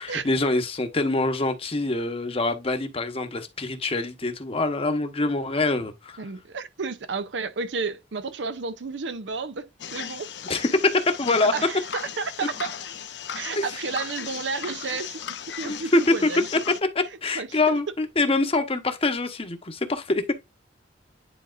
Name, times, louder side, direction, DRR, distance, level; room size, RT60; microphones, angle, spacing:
voice 1, 0.0-6.2 10.5-11.5 13.6-13.7 15.6-16.3 16.9-20.3, left 2 dB, 30° left, 1.0 m, -24 dB
voice 2, 6.2-10.3 11.5-12.7 13.3-16.5 17.3-17.8, right 4 dB, 75° right, 0.6 m, -32 dB
sound 1, 9.8-16.8, left 8 dB, 65° left, 0.7 m, -37 dB
10.0 x 4.2 x 2.5 m
head